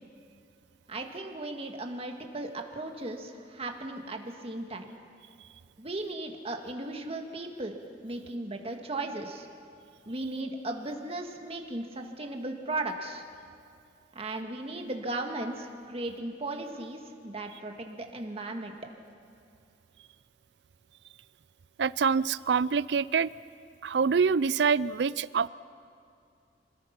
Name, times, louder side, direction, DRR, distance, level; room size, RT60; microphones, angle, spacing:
voice 1, 0.9-4.9 5.8-7.7 8.0-9.5 10.1-13.2 14.1-18.8, right 2 dB, 35° right, 3 dB, 1.9 m, -36 dB
voice 2, 21.8-23.3 23.8-25.5, right 5 dB, 70° right, 19 dB, 0.4 m, -25 dB
26.5 x 20.0 x 5.9 m, 2.5 s
head